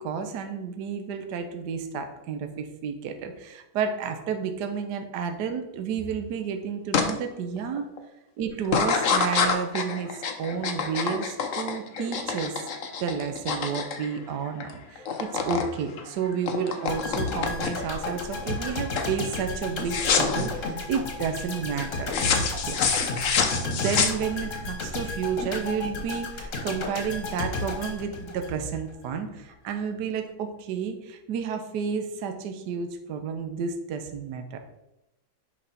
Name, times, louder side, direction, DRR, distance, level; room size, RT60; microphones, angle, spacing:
voice 1, 0.0-7.9 8.4-12.6 13.0-22.1 22.5-22.8 23.5-34.6, right 6 dB, 65° right, 6 dB, 1.2 m, -31 dB
sound 1, 6.9-7.1 7.6-8.0 8.6-14.7 15.0-15.7 16.0-17.9 18.4-18.7 19.0-19.2 19.9-20.5 22.1-24.6, left 6 dB, 65° left, 0.7 m, -27 dB
sound 2, 16.9-28.9 29.2-29.4, left 2 dB, 45° left, 1.3 m, -33 dB
5.9 x 5.3 x 4.2 m, 0.92 s
omnidirectional pair, 2.3 m